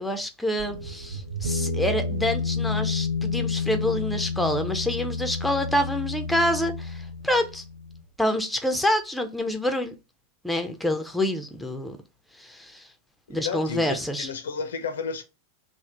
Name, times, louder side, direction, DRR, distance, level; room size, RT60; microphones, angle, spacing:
voice 1, 0.0-7.6 8.2-9.9 10.4-12.0 12.4-12.9 13.3-14.3, left 1 dB, ahead, 0.4 m, -27 dB
sound 1, 0.6-8.0, left 4 dB, 60° right, 0.6 m, -30 dB
voice 2, 13.3-15.2, left 5 dB, 65° left, 0.5 m, -32 dB
3.2 x 2.0 x 2.5 m
figure-of-eight pair, 90°, 0 cm